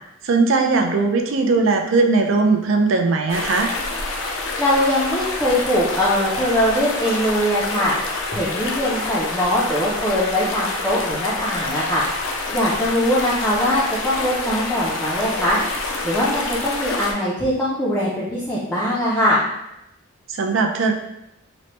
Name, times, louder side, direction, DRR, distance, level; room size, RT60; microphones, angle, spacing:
voice 1, 0.2-3.7 20.3-20.9, right 3 dB, 70° right, 4 dB, 0.4 m, -19 dB
sound 1, 3.3-17.1, left 3 dB, 70° left, 0.4 m, -27 dB
voice 2, 4.6-7.9 8.3-12.0 12.5-15.6 16.0-19.4, equal, 10° left, -7 dB, 0.4 m, -21 dB
3.0 x 2.1 x 2.9 m, 0.85 s
head